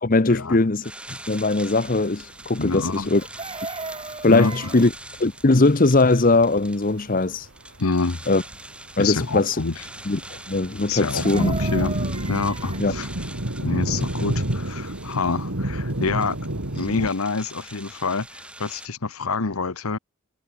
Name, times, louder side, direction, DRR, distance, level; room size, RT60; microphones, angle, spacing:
voice 1, 0.0-3.2 4.2-4.9 5.2-7.5 8.3-8.4 9.0-9.6 10.1-10.2 10.5-11.5 12.8-12.9, left 2 dB, 40° left, 0.9 m, -20 dB
sound 1, 0.8-18.9, right 1 dB, 5° right, 3.9 m, -44 dB
sound 2, 1.8-1.9 2.1-2.2 2.5-2.9 3.2-3.3 3.4-3.8 4.4-4.5 5.0-5.1 5.4-5.6 6.2-6.6 7.0-7.5 7.8-8.7 9.0-17.1, right 1 dB, 80° right, 3.6 m, -29 dB
voice 2, 2.6-3.1 4.2-4.7 7.8-8.2 9.0-9.8 10.9-11.9 12.3-13.1 13.6-16.4 16.7-20.0, left 4 dB, 90° left, 1.1 m, -27 dB
Chicken rooster, 3.1-4.9 11.0-12.8 15.1-15.2 15.4-15.7, right 3 dB, 25° right, 5.6 m, -36 dB
head